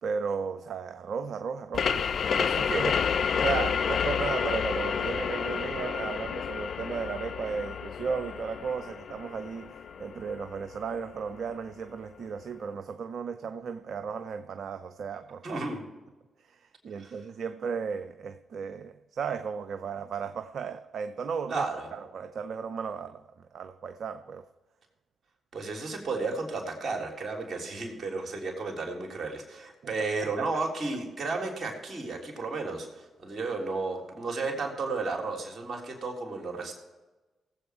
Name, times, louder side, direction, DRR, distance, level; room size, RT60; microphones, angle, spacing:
voice 1, 0.0-15.6 16.4-21.6 21.9-24.5 29.8-29.9 30.2-30.6, right 6 dB, 65° right, 0.5 m, -35 dB
sound 1, 1.7-11.1, left 7 dB, 60° left, 0.5 m, -30 dB
voice 2, 15.4-15.8 17.0-17.2 21.5-21.9 25.5-36.7, right 3 dB, 50° right, 3.4 m, -33 dB
18.5 x 7.8 x 4.5 m
hypercardioid pair, 40°, 0 cm